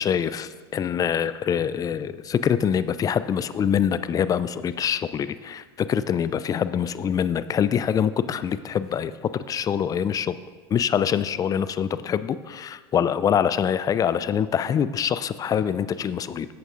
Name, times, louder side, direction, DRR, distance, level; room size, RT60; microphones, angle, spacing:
voice 1, 0.0-10.3 10.7-16.5, left 8 dB, 25° left, 14 dB, 0.5 m, -24 dB
11.0 x 8.0 x 3.7 m, 1.4 s
hypercardioid pair, 95°, 13 cm